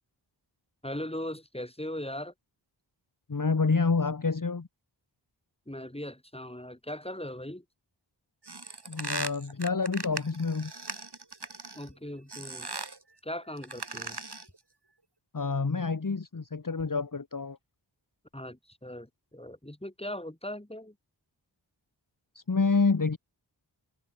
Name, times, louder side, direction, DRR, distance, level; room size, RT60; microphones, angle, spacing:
voice 1, 0.8-2.3 5.7-7.6 11.7-12.7 13.2-14.2 18.3-20.9, left 1 dB, 15° left, 5.9 m, -39 dB
voice 2, 3.3-4.7 8.9-10.7 15.3-17.6 22.3-23.2, left 4 dB, 45° left, 1.5 m, -28 dB
sound 1, 8.4-11.9 12.3-13.0 13.6-14.6, right 3 dB, 60° right, 6.8 m, -38 dB
wide cardioid pair, 45°, 45 cm